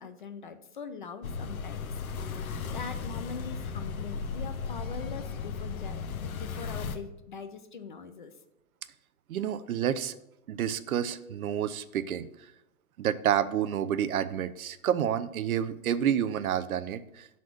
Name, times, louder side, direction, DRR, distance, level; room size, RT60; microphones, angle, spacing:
voice 1, 0.0-8.3, left 5 dB, 40° left, 8 dB, 0.4 m, -43 dB
sound 1, 1.2-7.0, left 5 dB, 85° left, 0.9 m, -35 dB
voice 2, 9.3-10.1 10.5-12.3 13.0-17.3, right 9 dB, 85° right, 14 dB, 0.7 m, -29 dB
6.4 x 4.1 x 5.9 m, 0.84 s
hypercardioid pair, 170°, 41 cm